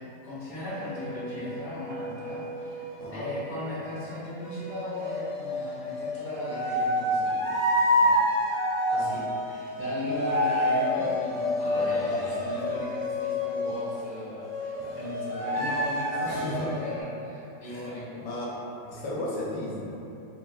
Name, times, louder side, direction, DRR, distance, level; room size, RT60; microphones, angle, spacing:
voice 1, 0.0-2.8 3.1-7.5 8.0-8.2 8.9-18.3 18.8-18.9, left 1 dB, 30° left, -12 dB, 1.2 m, -37 dB
sound 1, 0.7-3.4 4.4-13.9 14.4-17.0, left 1 dB, 25° right, 0.8 m, -29 dB
voice 2, 3.0-3.3 10.9-11.1 11.7-12.2 12.6-12.8 16.2-16.7 17.6-17.9 18.2-18.6 18.9-19.8, left 1 dB, 85° left, -6 dB, 1.2 m, -35 dB
3.4 x 2.2 x 2.7 m, 2.9 s
omnidirectional pair, 1.8 m